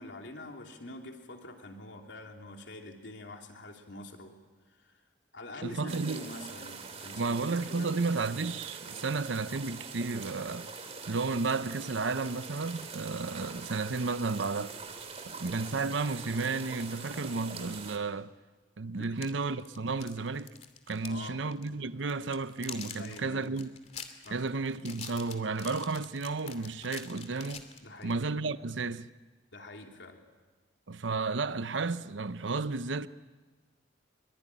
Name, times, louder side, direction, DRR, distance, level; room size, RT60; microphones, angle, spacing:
voice 1, 0.0-4.3 4.7-5.0 5.3-7.9 18.9-19.3 21.0-21.4 23.0-23.5 24.2-24.5 27.8-28.2 29.5-30.2, left 1 dB, 75° left, 3.1 m, -46 dB
voice 2, 5.6-6.2 7.2-10.7 11.1-14.7 15.3-18.3 18.8-20.5 20.9-23.7 24.3-27.6 28.0-29.1 30.9-33.1, right 3 dB, 85° right, 0.8 m, -32 dB
sound 1, 5.9-18.0, right 5 dB, 35° right, 3.1 m, -44 dB
sound 2, 19.0-21.3 21.5-21.7 22.1-28.2, left 7 dB, 35° left, 2.6 m, -45 dB
24.5 x 24.0 x 10.0 m
head